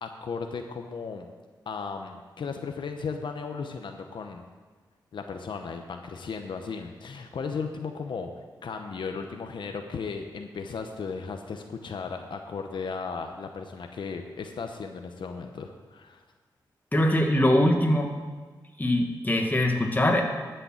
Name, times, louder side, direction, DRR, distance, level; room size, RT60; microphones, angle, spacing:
voice 1, 0.0-1.3 1.7-4.4 5.1-8.3 8.6-16.2, left 5 dB, 75° left, 5 dB, 0.9 m, -35 dB
voice 2, 16.9-18.1 18.8-20.2, left 1 dB, 20° left, 2 dB, 1.8 m, -22 dB
12.0 x 6.8 x 7.7 m, 1.4 s
cardioid pair, 70°, 8 cm